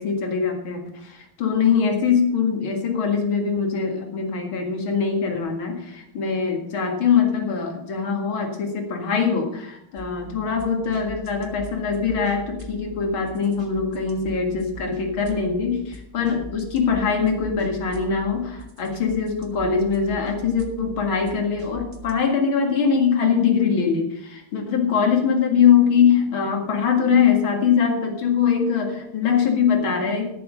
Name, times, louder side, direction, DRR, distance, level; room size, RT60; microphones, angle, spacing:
voice 1, 0.0-30.3, left 6 dB, 70° left, 3 dB, 2.7 m, -22 dB
sound 1, 10.0-22.1, right 1 dB, 30° right, 1.4 m, -41 dB
13.5 x 7.1 x 6.3 m, 0.79 s
omnidirectional pair, 2.3 m